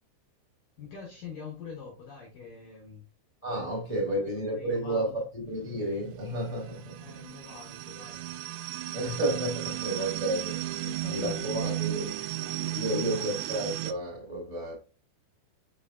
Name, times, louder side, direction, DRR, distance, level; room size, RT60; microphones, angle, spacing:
voice 1, 0.8-3.0 3.6-3.7 3.9-5.1 7.0-8.4 9.7-9.8 10.8-13.4, left 7 dB, 70° left, 2.1 m, -45 dB
voice 2, 3.4-7.1 8.9-12.1 12.4-14.8, right 1 dB, 10° left, 2.2 m, -32 dB
sound 1, 5.5-13.9, right 15 dB, 85° right, 3.0 m, -35 dB
6.9 x 5.6 x 2.5 m
omnidirectional pair, 5.7 m